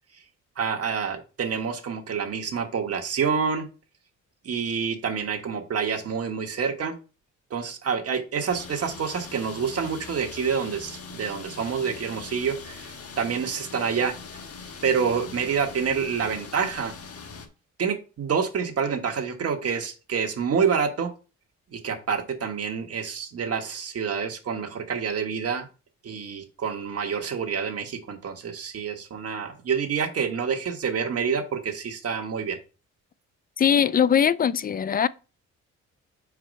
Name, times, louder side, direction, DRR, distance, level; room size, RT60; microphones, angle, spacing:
voice 1, 0.6-3.7 4.4-6.9 7.5-14.1 14.8-16.9 17.8-21.1 21.7-25.7 26.0-32.6, right 6 dB, 50° right, 1.4 m, -27 dB
sound 1, 8.5-17.5, left 5 dB, 50° left, 1.4 m, -41 dB
voice 2, 33.6-35.1, left 8 dB, 30° left, 0.4 m, -21 dB
4.8 x 4.4 x 5.2 m
cardioid pair, 90°, 30 cm